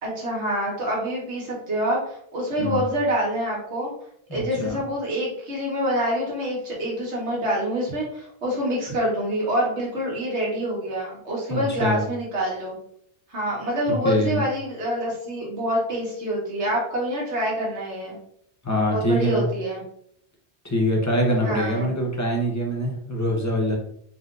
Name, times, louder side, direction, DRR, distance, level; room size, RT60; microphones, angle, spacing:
voice 1, 0.0-3.9 4.3-12.8 13.3-18.2 18.9-19.8 21.4-21.9, equal, 85° right, -3 dB, 1.8 m, -26 dB
voice 2, 4.3-4.8 11.5-12.0 14.0-14.4 18.6-19.5 20.6-23.8, equal, 15° left, -1 dB, 0.8 m, -24 dB
4.2 x 3.8 x 2.5 m, 0.69 s
omnidirectional pair, 1.1 m